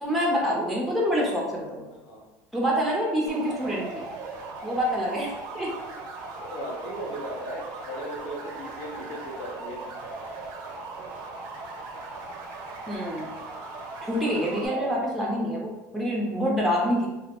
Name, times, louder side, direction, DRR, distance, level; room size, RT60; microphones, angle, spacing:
voice 1, 0.0-1.9 2.5-4.0 4.6-5.7 12.9-13.3 14.0-17.1, equal, ahead, -3 dB, 0.5 m, -26 dB
voice 2, 1.9-2.2 6.4-9.8 14.7-15.2, equal, 85° left, -3 dB, 0.8 m, -37 dB
sound 1, 3.3-14.7, right 3 dB, 60° right, 0.5 m, -38 dB
2.5 x 2.0 x 2.8 m, 1.0 s
cardioid pair, 140°, 8 cm